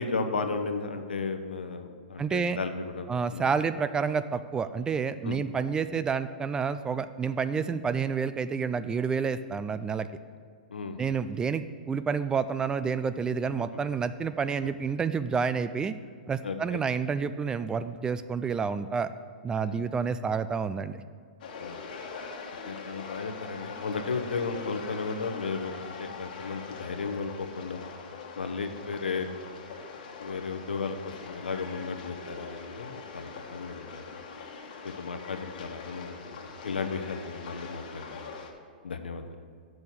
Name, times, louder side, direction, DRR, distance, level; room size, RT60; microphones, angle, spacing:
voice 1, 0.0-3.1 3.3-3.4 5.2-5.4 10.7-11.0 16.4-16.8 19.6-19.8 21.6-21.8 22.7-27.8 28.3-29.2 30.2-34.0 34.8-38.3 38.8-39.4, left 4 dB, 85° left, 7 dB, 0.9 m, -34 dB
voice 2, 2.2-2.6 3.1-10.1 11.0-15.9 16.3-19.1 19.4-21.0, right 6 dB, 15° right, 12 dB, 0.3 m, -29 dB
sound 1, 21.4-38.5, left 5 dB, 60° left, 1.3 m, -42 dB
6.7 x 6.3 x 7.3 m, 2.1 s
hypercardioid pair, 120°, 5 cm